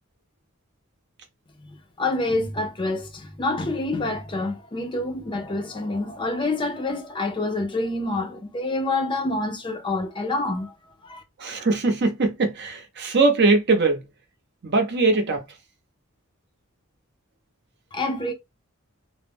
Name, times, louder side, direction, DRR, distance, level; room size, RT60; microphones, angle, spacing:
voice 1, 1.6-10.7 11.0-11.2 17.9-18.3, left 2 dB, 25° left, 0.4 m, -27 dB
voice 2, 11.4-14.0 14.6-15.4, right 3 dB, 55° right, 0.7 m, -21 dB
2.2 x 2.0 x 3.4 m
head